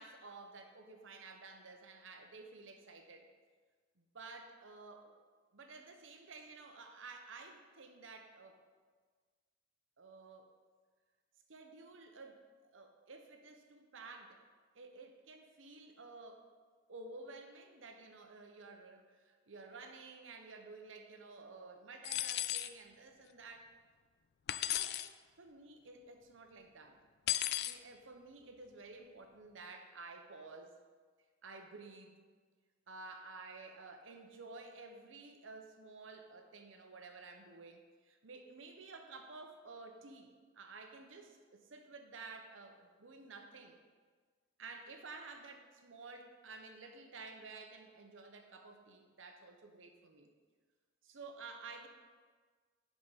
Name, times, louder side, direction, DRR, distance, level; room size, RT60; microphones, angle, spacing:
voice 1, 0.0-3.3 4.0-5.1 5.5-8.6 10.0-10.5 11.5-14.4 14.7-16.4 16.9-23.7 24.7-25.0 25.4-27.0 27.6-30.7 31.4-32.2 32.9-43.8 44.6-50.3 51.0-51.9, right 3 dB, 75° right, 4 dB, 0.9 m, -52 dB
sound 1, 22.0-22.7 24.5-25.1 27.3-27.8, left 13 dB, 55° left, 0.3 m, -35 dB
10.5 x 5.1 x 4.1 m, 1.5 s
head